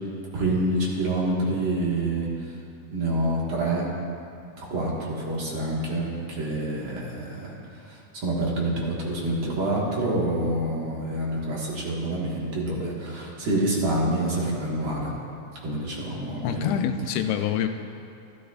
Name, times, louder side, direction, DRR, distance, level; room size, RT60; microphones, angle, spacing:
voice 1, 0.3-2.5 2.9-3.9 4.6-7.6 7.9-15.1 15.6-16.7, right 1 dB, 45° right, -5 dB, 1.8 m, -27 dB
voice 2, 16.4-17.7, left 9 dB, 90° left, 7 dB, 2.5 m, -26 dB
13.5 x 12.5 x 2.4 m, 2.5 s
omnidirectional pair, 4.2 m